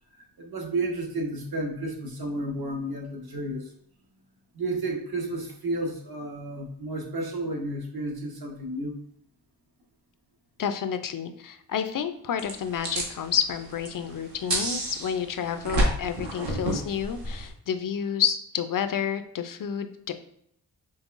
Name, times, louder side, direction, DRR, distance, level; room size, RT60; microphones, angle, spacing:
voice 1, 0.4-3.7 4.5-9.0, right 2 dB, 60° right, 1 dB, 1.2 m, -32 dB
voice 2, 10.6-20.1, left 8 dB, 50° left, 10 dB, 0.5 m, -30 dB
sound 1, 12.4-17.5, right 1 dB, 75° right, 1.3 m, -30 dB
5.4 x 3.2 x 2.5 m, 0.72 s
wide cardioid pair, 95°, 42 cm